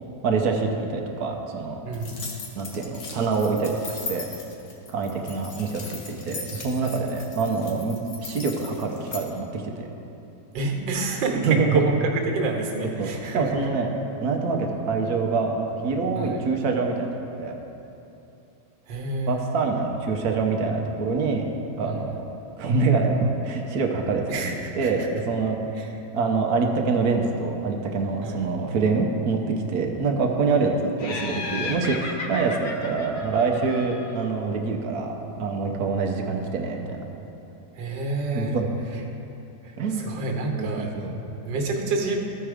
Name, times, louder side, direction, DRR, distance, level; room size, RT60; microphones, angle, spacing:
voice 1, 0.2-1.8 2.6-4.3 4.9-9.9 11.4-11.8 13.0-13.9 14.2-17.1 17.4-17.6 19.3-21.4 21.8-22.1 22.6-24.4 24.8-25.6 26.1-29.4 29.7-37.0 38.3-38.7 39.8-40.1 40.6-41.3, right 4 dB, 65° right, 2 dB, 1.2 m, -25 dB
voice 2, 1.8-2.3 10.5-13.7 16.2-16.4 18.9-19.4 21.8-22.2 24.3-25.1 25.7-25.9 28.2-28.4 37.8-38.6 38.9-39.0 39.6-42.2, right 3 dB, 85° right, 2 dB, 1.7 m, -28 dB
sound 1, 1.9-9.2, left 4 dB, 55° left, 1.3 m, -38 dB
Laughter, 31.0-34.3, left 3 dB, 80° left, 0.4 m, -34 dB
13.5 x 4.6 x 4.9 m, 2.9 s
omnidirectional pair, 1.9 m